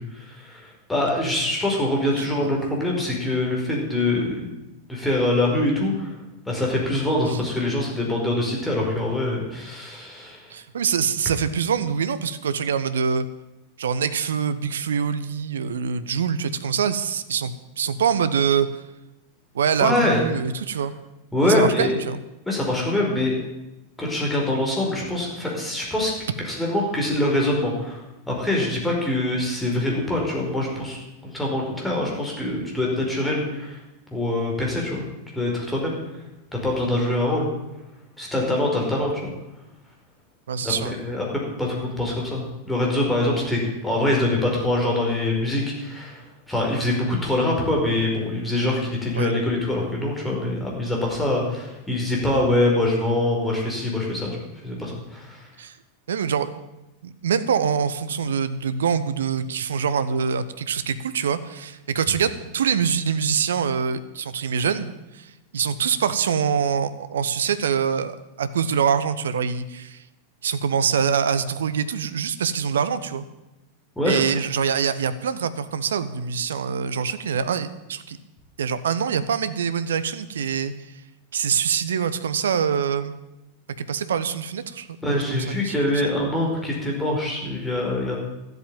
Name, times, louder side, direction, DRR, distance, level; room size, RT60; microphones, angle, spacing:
voice 1, 0.0-4.5 4.9-6.1 6.5-10.5 19.8-20.2 21.3-21.9 22.5-23.3 24.0-26.1 26.4-31.0 31.2-33.8 34.1-35.0 35.3-36.0 36.5-37.5 38.2-39.3 40.6-41.2 41.6-54.3 54.6-55.5 74.0-74.2 85.0-88.2, left 1 dB, 5° left, -2 dB, 4.9 m, -24 dB
voice 2, 2.2-2.5 7.3-7.4 10.5-13.3 13.8-18.7 19.5-20.9 21.4-22.2 40.5-41.0 49.1-49.3 55.6-55.7 56.1-56.5 57.0-70.0 70.4-73.3 74.0-78.2 78.6-80.7 81.3-83.1 83.8-85.7 86.0-86.1, right 7 dB, 65° right, 13 dB, 0.9 m, -24 dB
13.5 x 8.1 x 9.1 m, 0.97 s
figure-of-eight pair, 90°, 0 cm